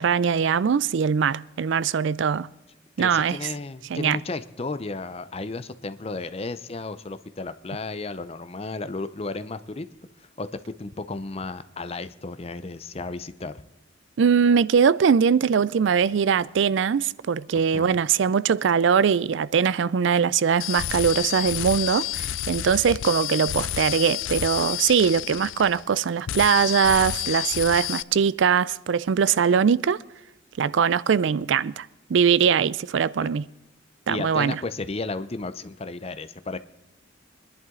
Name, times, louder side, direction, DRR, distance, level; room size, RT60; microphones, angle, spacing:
voice 1, 0.0-2.5 3.0-3.5 3.9-4.2 14.2-30.0 30.6-33.4 34.1-34.6, right 6 dB, 70° right, 0.4 m, -21 dB
voice 2, 3.0-9.9 10.2-13.5 17.7-18.0 33.2-33.3 34.1-36.6, left 3 dB, 30° left, 0.6 m, -33 dB
sound 1, 20.6-26.0 26.3-28.0, left 14 dB, 90° left, 0.4 m, -30 dB
23.5 x 11.0 x 3.8 m
head